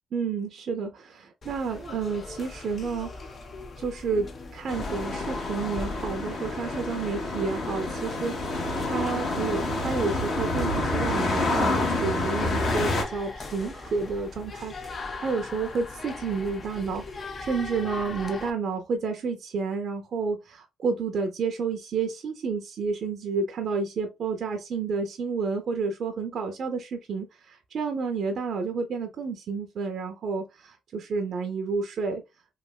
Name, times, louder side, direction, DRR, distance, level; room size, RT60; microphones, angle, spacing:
voice 1, 0.1-3.4 3.8-14.7 15.1-32.2, right 4 dB, 60° right, 0.6 m, -30 dB
sound 1, 1.4-18.5, left 3 dB, 40° left, 0.6 m, -40 dB
sound 2, 4.7-13.0, left 2 dB, 55° left, 1.4 m, -28 dB
3.2 x 2.5 x 2.3 m
cardioid pair, 90°, 0 cm